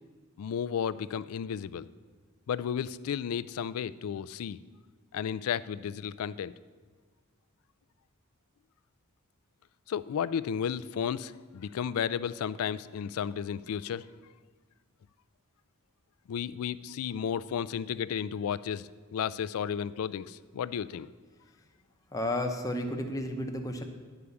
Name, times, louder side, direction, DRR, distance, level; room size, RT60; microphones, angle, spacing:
voice 1, 0.4-1.9 2.5-4.6 5.1-6.5 9.9-14.0 16.3-21.1, left 8 dB, 75° left, 18 dB, 0.3 m, -33 dB
voice 2, 22.1-23.9, left 1 dB, 15° left, 4 dB, 0.8 m, -32 dB
9.6 x 4.9 x 7.0 m, 1.5 s
head